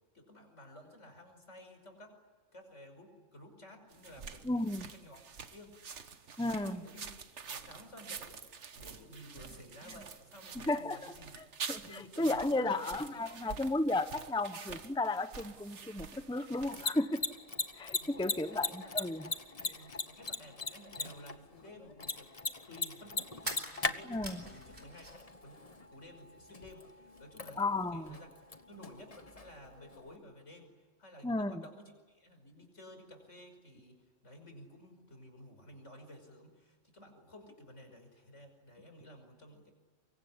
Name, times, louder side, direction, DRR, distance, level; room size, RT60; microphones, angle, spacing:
voice 1, 0.1-2.2 2.5-4.4 4.9-5.2 5.5-5.8 6.4-8.4 8.7-11.3 11.8-13.4 18.0-18.9 19.7-28.3 28.7-30.7 31.0-39.7, left 1 dB, 70° left, 5 dB, 5.8 m, -53 dB
sound 1, 3.9-16.9, right 5 dB, 65° right, 1.6 m, -47 dB
voice 2, 4.4-4.9 6.4-6.8 10.6-17.2 17.8-19.2 24.1-24.4 27.6-28.1 31.2-31.6, left 2 dB, 5° left, 11 dB, 0.8 m, -34 dB
Mechanisms, 16.5-30.2, left 4 dB, 30° left, 1.2 m, -41 dB
sound 2, 23.4-25.3 25.6-26.5, right 1 dB, 45° right, 4.6 m, -45 dB
25.0 x 23.5 x 9.8 m, 1.4 s
omnidirectional pair, 1.3 m